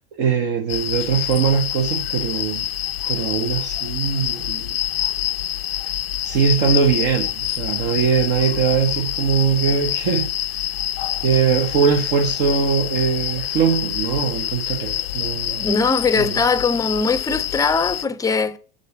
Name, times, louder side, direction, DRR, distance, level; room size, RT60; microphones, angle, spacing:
voice 1, 0.2-2.7 3.1-4.8 6.2-10.3 11.2-15.7 16.2-16.4, right 6 dB, 50° right, 1.0 m, -21 dB
sound 1, 0.7-18.0, left 13 dB, 70° left, 0.5 m, -26 dB
voice 2, 15.6-18.6, left 4 dB, 10° left, 0.6 m, -20 dB
6.7 x 6.5 x 4.8 m
figure-of-eight pair, 75°, 30 cm